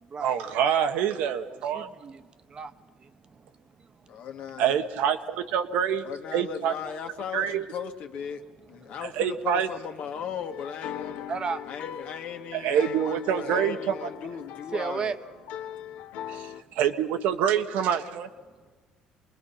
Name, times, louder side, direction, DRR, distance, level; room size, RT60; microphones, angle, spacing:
voice 1, 0.2-1.9 4.6-6.0 6.3-6.7 7.3-7.6 9.2-9.7 12.5-13.9 16.3-18.3, right 8 dB, 80° right, 7 dB, 1.4 m, -26 dB
voice 2, 1.5-3.5 3.8-3.9 8.8-8.9 11.3-11.6 14.7-15.2, right 5 dB, 35° right, 11 dB, 1.0 m, -35 dB
voice 3, 4.1-4.8 6.0-8.4 8.7-11.3 11.7-15.2, left 7 dB, 65° left, 5 dB, 1.8 m, -37 dB
sound 1, 10.5-16.6, left 10 dB, 80° left, 0.9 m, -40 dB
26.0 x 20.5 x 5.8 m, 1.4 s
cardioid pair, 100°, 3 cm